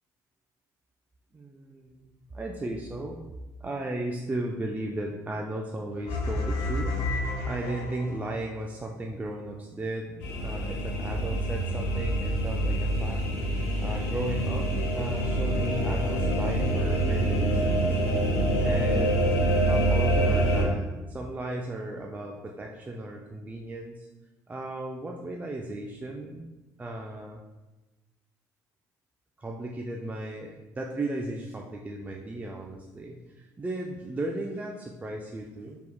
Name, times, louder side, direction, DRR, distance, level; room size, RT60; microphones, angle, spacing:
voice 1, 1.3-3.2 3.6-6.9 7.4-10.2 10.4-13.2 13.8-18.0 18.6-19.4 19.7-24.1 24.5-26.5 26.8-27.4 29.4-35.8, right 2 dB, 20° right, 0 dB, 0.4 m, -35 dB
sound 1, 6.1-8.5, left 2 dB, 70° left, 1.3 m, -30 dB
sound 2, 10.2-20.6, right 1 dB, 85° left, 0.8 m, -26 dB
4.5 x 3.5 x 2.2 m, 1.1 s
supercardioid pair, 75°, 8 cm